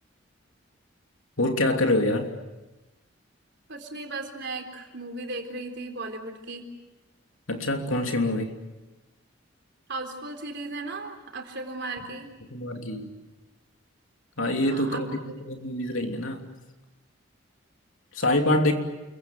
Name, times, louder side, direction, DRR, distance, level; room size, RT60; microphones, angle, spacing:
voice 1, 1.4-2.3 7.5-8.6 12.5-13.1 14.4-15.1 15.4-16.5 18.1-18.7, left 1 dB, 85° left, 4 dB, 3.0 m, -25 dB
voice 2, 3.7-6.7 9.9-12.3 14.6-15.2, right 2 dB, 55° right, 5 dB, 3.9 m, -36 dB
29.0 x 23.0 x 7.7 m, 1.1 s
head